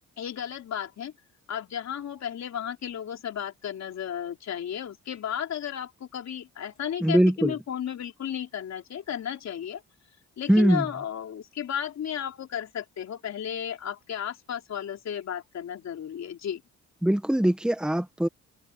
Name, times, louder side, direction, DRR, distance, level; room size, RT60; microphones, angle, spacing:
voice 1, 0.2-1.1 1.5-9.8 10.4-16.6, left 9 dB, 60° left, 3.8 m, -34 dB
voice 2, 7.0-7.6 10.5-10.8 17.0-18.3, right 1 dB, 5° right, 1.5 m, -22 dB
cardioid pair, 90°, 30 cm